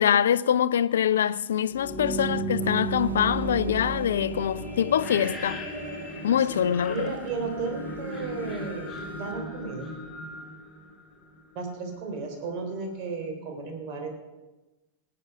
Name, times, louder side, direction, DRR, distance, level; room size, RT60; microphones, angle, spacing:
voice 1, 0.0-5.6 6.2-7.1, left 9 dB, 65° left, 0.4 m, -24 dB
sound 1, 1.7-11.5, right 2 dB, 15° left, 3.1 m, -35 dB
sound 2, 2.6-9.3, right 3 dB, 75° right, 1.0 m, -48 dB
voice 2, 6.4-10.0 11.5-14.1, right 4 dB, 45° right, 3.3 m, -34 dB
18.5 x 8.7 x 5.8 m
figure-of-eight pair, 90°, 0 cm